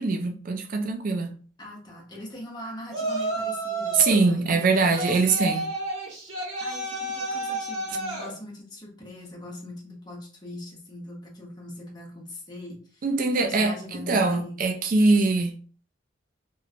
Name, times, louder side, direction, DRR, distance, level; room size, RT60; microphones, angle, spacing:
voice 1, 0.0-1.3 3.9-5.7 13.0-13.7 14.1-15.6, right 3 dB, 45° right, 0.4 m, -22 dB
voice 2, 1.6-5.1 6.6-13.1 13.4-14.6, left 1 dB, 20° left, 1.0 m, -41 dB
Yell, 2.9-4.2 4.9-8.3, right 2 dB, 90° right, 1.4 m, -30 dB
3.1 x 3.0 x 2.5 m
head